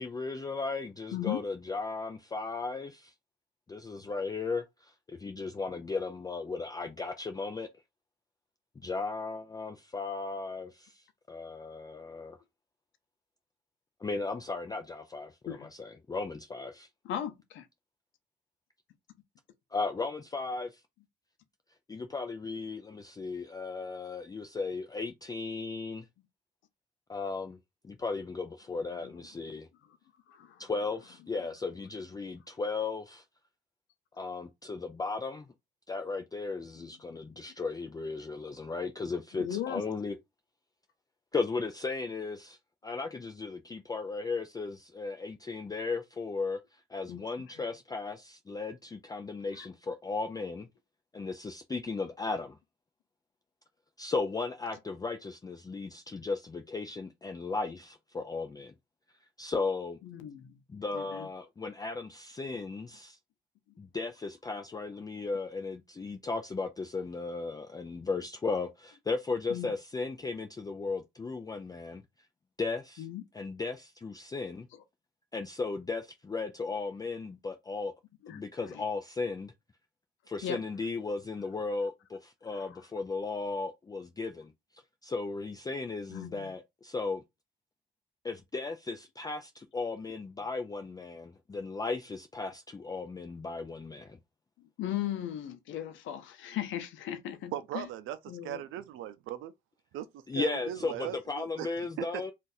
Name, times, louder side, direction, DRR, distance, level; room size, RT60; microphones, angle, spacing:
voice 1, 0.0-3.1 3.7-7.7 8.8-12.4 14.0-16.9 19.7-20.8 21.9-26.0 27.1-27.6 27.8-29.7 30.6-33.2 34.2-35.5 35.9-40.2 41.3-42.6 42.8-50.7 51.1-52.6 54.0-58.7 59.4-60.0 60.7-63.2 63.8-72.0 72.6-73.1 73.3-74.7 75.3-77.9 78.3-79.5 80.3-84.5 85.0-87.2 88.2-94.2 100.3-102.3, left 4 dB, 20° left, 0.4 m, -36 dB
voice 2, 17.0-17.7 29.0-29.2 30.3-30.6 36.8-36.9 39.4-39.8 47.1-47.2 49.5-49.7 60.0-60.6 60.9-61.3 69.5-69.7 73.0-73.2 78.2-78.8 80.4-80.6 82.5-82.9 86.1-86.5 94.6-97.9 98.3-98.6, left 11 dB, 80° left, 0.6 m, -37 dB
voice 3, 97.5-98.2 98.4-99.5 99.9-101.9, right 12 dB, 85° right, 0.5 m, -39 dB
2.6 x 2.4 x 3.9 m
cardioid pair, 90°, 20 cm